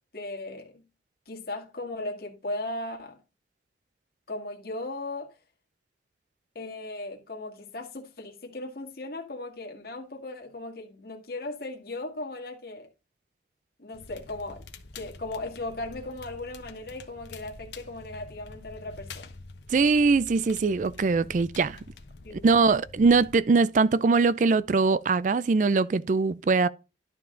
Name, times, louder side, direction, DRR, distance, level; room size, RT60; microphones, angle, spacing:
voice 1, 0.1-0.8 1.3-3.2 4.3-5.3 6.6-12.9 13.8-14.7 14.9-19.3 22.2-22.5, left 2 dB, 55° left, 2.0 m, -37 dB
Crackle, 13.9-23.3, left 3 dB, 75° left, 1.1 m, -47 dB
voice 2, 19.7-21.8 22.4-26.7, right 4 dB, 45° right, 0.4 m, -22 dB
11.5 x 5.7 x 3.8 m
head